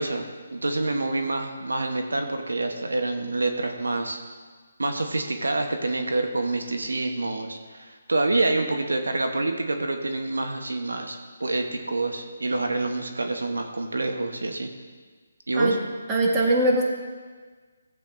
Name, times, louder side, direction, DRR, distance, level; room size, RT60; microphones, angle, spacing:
voice 1, 0.0-4.2 4.8-14.7 15.5-15.8, right 2 dB, 90° right, 5 dB, 1.0 m, -27 dB
voice 2, 16.1-16.8, right 1 dB, 20° right, -3 dB, 1.6 m, -21 dB
15.5 x 8.0 x 2.6 m, 1.5 s
figure-of-eight pair, 155°, 0 cm